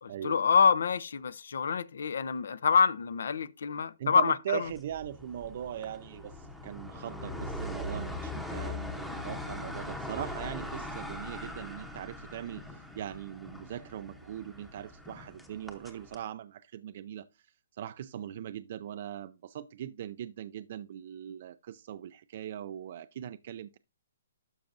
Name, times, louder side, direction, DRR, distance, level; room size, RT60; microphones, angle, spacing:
voice 1, 0.0-4.7, left 6 dB, 70° left, 0.7 m, -26 dB
voice 2, 4.0-23.8, right 10 dB, 40° right, 0.4 m, -40 dB
sound 1, 4.7-16.2, left 1 dB, ahead, 0.9 m, -41 dB
12.0 x 5.8 x 2.6 m
hypercardioid pair, 165°, 0 cm